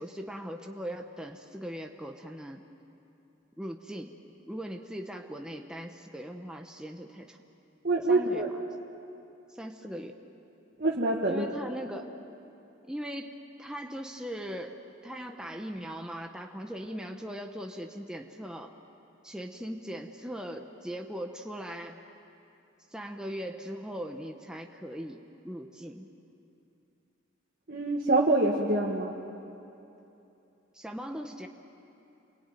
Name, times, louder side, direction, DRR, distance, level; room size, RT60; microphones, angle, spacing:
voice 1, 0.0-2.6 3.6-4.2 4.5-7.4 8.1-8.4 9.5-10.2 11.3-12.1 12.9-14.8 15.0-18.7 19.2-22.0 22.9-26.1 30.7-31.5, equal, 5° right, 3 dB, 1.1 m, -39 dB
voice 2, 7.8-8.5 10.8-11.5 27.7-29.2, right 2 dB, 50° right, -2 dB, 2.0 m, -25 dB
29.0 x 22.0 x 9.3 m, 2.8 s
head